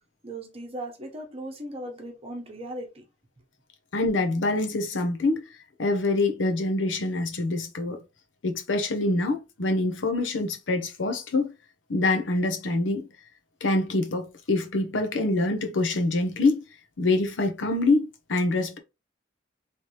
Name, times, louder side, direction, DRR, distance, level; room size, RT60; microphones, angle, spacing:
voice 1, 0.2-3.0, right 1 dB, 30° right, 1.0 m, -37 dB
voice 2, 3.9-5.4 5.8-8.0 8.4-11.5 11.9-13.1 13.6-16.6 17.0-18.8, left 2 dB, 85° left, 0.8 m, -25 dB
3.2 x 2.9 x 3.0 m
head